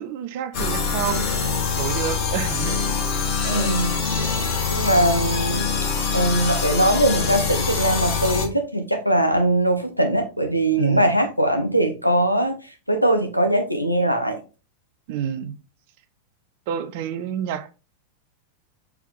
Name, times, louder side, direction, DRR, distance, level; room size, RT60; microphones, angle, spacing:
voice 1, 0.0-2.8 3.4-3.7 10.8-11.1 15.1-15.5 16.7-17.7, right 9 dB, 50° right, 0.8 m, -29 dB
sound 1, 0.5-8.4, left 5 dB, 45° left, 3.2 m, -24 dB
voice 2, 3.5-4.0 4.7-12.6 12.9-14.4, right 1 dB, 90° left, 1.1 m, -21 dB
6.0 x 4.5 x 3.7 m
figure-of-eight pair, 90°, 0 cm